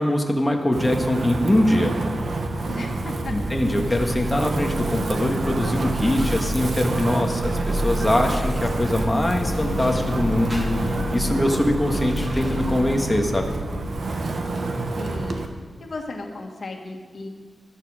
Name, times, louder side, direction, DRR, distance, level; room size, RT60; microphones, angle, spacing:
voice 1, 0.0-1.9 3.3-13.6, left 1 dB, 15° left, 1 dB, 1.6 m, -23 dB
Wind, 0.7-15.5, right 2 dB, 65° right, 1.3 m, -28 dB
voice 2, 2.7-3.3 15.0-15.5 15.8-17.3, left 2 dB, 55° left, 1 dB, 2.0 m, -35 dB
sound 1, 3.2-13.1, equal, 15° right, 2.3 m, -31 dB
sound 2, 9.4-14.7, left 6 dB, 85° left, 0.5 m, -37 dB
13.5 x 12.0 x 5.0 m, 1.5 s
wide cardioid pair, 130°, 0 cm